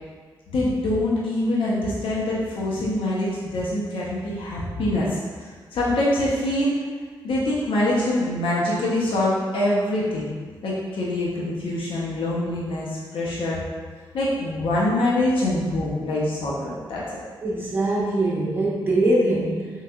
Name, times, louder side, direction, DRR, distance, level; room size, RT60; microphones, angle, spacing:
voice 1, 0.5-6.8 7.2-10.3 10.6-13.6 14.1-17.0, left 1 dB, 75° left, -6 dB, 0.6 m, -24 dB
voice 2, 17.4-19.7, right 1 dB, 25° right, -6 dB, 0.9 m, -22 dB
3.4 x 3.1 x 2.2 m, 1.5 s
cardioid pair, 100°, 9 cm